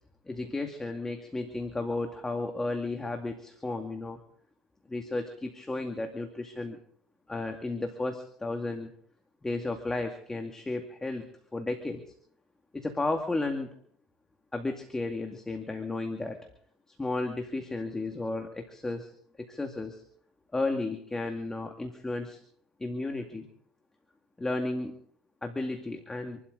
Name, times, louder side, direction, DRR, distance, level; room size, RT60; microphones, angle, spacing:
voice 1, 0.3-4.2 4.9-6.8 7.3-8.9 9.4-11.3 11.5-12.0 12.7-13.7 14.5-16.4 17.0-19.1 19.4-20.0 20.5-22.4 22.8-23.5 24.4-25.0 25.4-26.4, left 2 dB, 15° left, 4 dB, 2.2 m, -33 dB
26.5 x 12.5 x 3.9 m, 0.63 s
hypercardioid pair, 80°, 3 cm